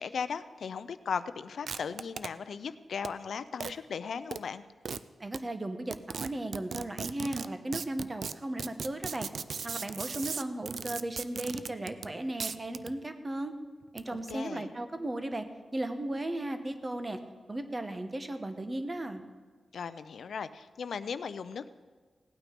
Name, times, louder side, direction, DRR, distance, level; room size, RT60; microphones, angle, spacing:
voice 1, 0.0-4.6 14.1-14.7 19.7-21.7, left 6 dB, 80° left, 13 dB, 0.5 m, -37 dB
sound 1, 1.7-2.3 3.0-3.1 3.6-3.7 4.3-4.4 4.9-5.0 5.3-5.4 5.9-12.1 12.4-13.0 13.8-14.3, right 5 dB, 70° right, 0.4 m, -37 dB
voice 2, 5.2-9.3 9.6-13.5 13.9-17.2 17.5-19.2, right 1 dB, 25° right, 8 dB, 1.1 m, -36 dB
17.0 x 9.1 x 5.2 m, 1.4 s
wide cardioid pair, 105°, 0 cm